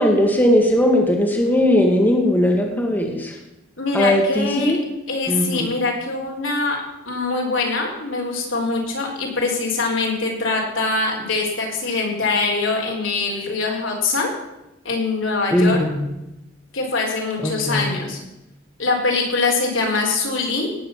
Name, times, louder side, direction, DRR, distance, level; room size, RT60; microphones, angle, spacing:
voice 1, 0.0-3.4 3.9-4.8 5.3-5.7 15.5-16.1 17.4-18.0, left 1 dB, 10° left, 1 dB, 1.7 m, -18 dB
voice 2, 3.8-4.7 5.1-6.8 7.1-14.3 14.8-15.8 16.7-18.2 18.8-20.7, left 3 dB, 75° left, -1 dB, 4.6 m, -23 dB
18.0 x 6.6 x 8.8 m, 0.93 s
head